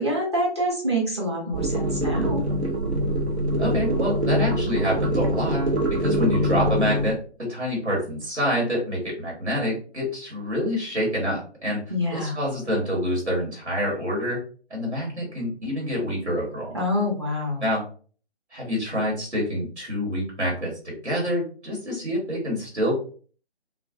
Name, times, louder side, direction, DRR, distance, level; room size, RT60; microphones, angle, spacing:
voice 1, 0.0-2.4 11.9-12.4 16.7-17.6, equal, 25° right, -4 dB, 0.5 m, -26 dB
sound 1, 1.5-7.1, equal, 70° right, 0.6 m, -24 dB
voice 2, 3.6-11.8 12.1-14.4 14.7-16.8 17.6-17.8 18.5-23.0, equal, 90° right, -3 dB, 1.3 m, -27 dB
2.4 x 2.1 x 2.5 m, 0.42 s
figure-of-eight pair, 140°, 34 cm